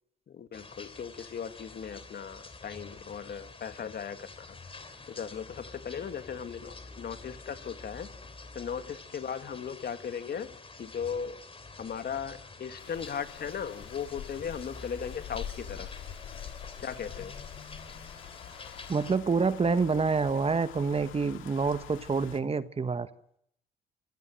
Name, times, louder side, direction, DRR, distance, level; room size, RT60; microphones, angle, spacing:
voice 1, 0.3-4.6 5.1-8.1 8.5-11.4 11.8-16.0 16.8-17.4, left 7 dB, 50° left, 10 dB, 2.0 m, -37 dB
sound 1, 0.5-19.2, left 3 dB, 30° left, 3.3 m, -48 dB
sound 2, 12.8-22.4, left 10 dB, 90° left, 2.0 m, -45 dB
voice 2, 18.9-23.1, right 4 dB, 30° right, 13 dB, 1.3 m, -27 dB
27.5 x 16.5 x 7.7 m, 0.72 s
cardioid pair, 90°, 20 cm